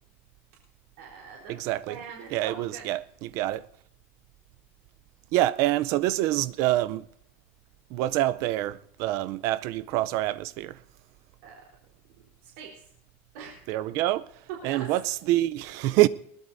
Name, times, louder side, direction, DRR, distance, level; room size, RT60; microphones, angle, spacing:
voice 1, 1.0-2.8 11.4-11.6 12.4-12.8 13.3-13.7 14.6-14.9, right 6 dB, 70° right, 3.9 m, -43 dB
voice 2, 1.5-2.0 2.3-3.7 5.3-7.0 7.9-10.8 13.7-14.3 14.6-16.1, right 15 dB, 45° right, 0.5 m, -26 dB
21.0 x 19.0 x 2.7 m
supercardioid pair, 165°, 7 cm